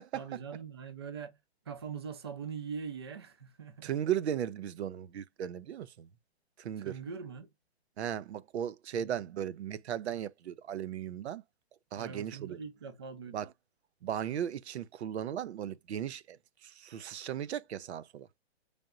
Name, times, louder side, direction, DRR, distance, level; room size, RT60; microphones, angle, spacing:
voice 1, 0.1-1.4 1.7-3.9 6.8-7.5 8.9-9.2 12.0-13.4, right 6 dB, 25° right, 0.4 m, -42 dB
voice 2, 3.8-6.1 6.6-6.9 8.0-11.4 11.9-12.6 13.3-13.5 14.0-18.3, right 10 dB, 85° right, 0.5 m, -36 dB
3.8 x 3.4 x 2.4 m
hypercardioid pair, 170°, 32 cm